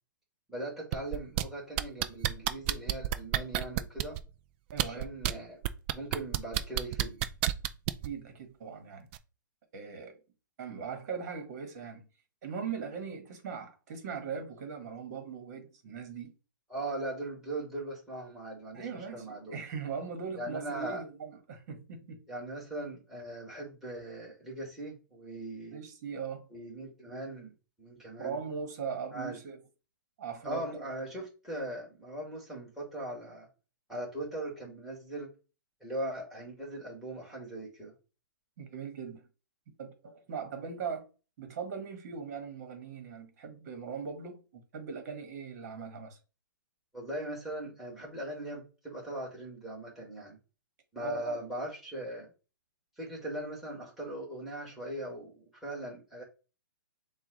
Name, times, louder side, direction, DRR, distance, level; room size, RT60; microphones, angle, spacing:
voice 1, 0.5-4.2 4.8-5.6 5.9-7.2 16.7-19.5 20.3-21.0 22.3-25.8 26.5-27.5 27.8-28.4 29.1-29.4 30.4-33.5 33.9-35.3 35.8-37.9 46.9-50.4 50.9-52.3 53.0-56.2, right 1 dB, ahead, 2.2 m, -40 dB
sound 1, 0.9-1.4 1.8-4.2 4.7-5.3 5.6-8.1 9.1-9.2, right 14 dB, 35° right, 0.4 m, -29 dB
voice 2, 4.7-5.1 8.0-9.1 9.7-10.2 10.6-12.1 12.4-16.3 18.7-22.2 25.7-26.5 28.2-29.6 30.2-30.8 38.6-39.3 39.8-41.1 41.4-46.2 51.0-51.4, right 6 dB, 50° right, 1.6 m, -40 dB
6.9 x 2.5 x 3.1 m
hypercardioid pair, 130°, 11 cm